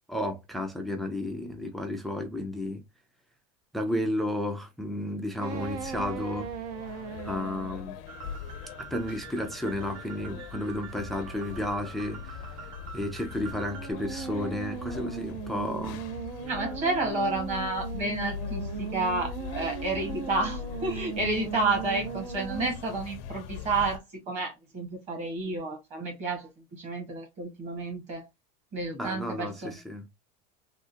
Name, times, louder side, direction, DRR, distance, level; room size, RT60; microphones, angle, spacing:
voice 1, 0.1-2.8 3.7-6.5 7.2-8.0 8.9-12.4 12.9-16.0 28.9-30.0, left 1 dB, ahead, 0.3 m, -32 dB
sound 1, 5.4-7.9 13.5-22.7, right 7 dB, 75° right, 0.8 m, -38 dB
sound 2, 5.5-24.0, left 7 dB, 50° left, 0.5 m, -41 dB
sound 3, 8.1-13.9, right 5 dB, 50° right, 1.1 m, -46 dB
voice 2, 16.5-28.3 28.7-29.8, right 3 dB, 35° right, 1.5 m, -31 dB
3.6 x 2.4 x 2.8 m
supercardioid pair, 165°, 20 cm